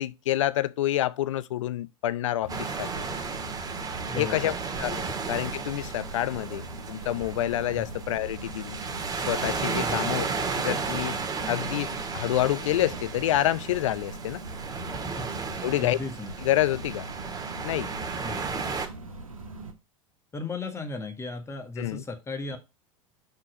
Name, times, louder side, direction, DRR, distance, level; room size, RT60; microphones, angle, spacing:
voice 1, 0.0-3.0 4.2-4.5 4.8-8.8 9.3-10.3 10.5-11.2 11.5-14.4 15.6-16.0 16.4-17.1 17.6-17.9 21.8-22.0, left 13 dB, 65° left, 0.6 m, -28 dB
sound 1, 2.4-19.7, right 2 dB, 80° right, 1.3 m, -41 dB
sound 2, 2.5-18.9, right 5 dB, 20° right, 1.7 m, -34 dB
voice 2, 4.1-4.5 5.1-5.2 7.7-7.9 9.8-10.1 15.2-15.3 15.8-16.3 18.2-18.8 20.3-22.6, left 3 dB, 15° left, 1.5 m, -36 dB
5.9 x 4.5 x 6.2 m
figure-of-eight pair, 80°, 17 cm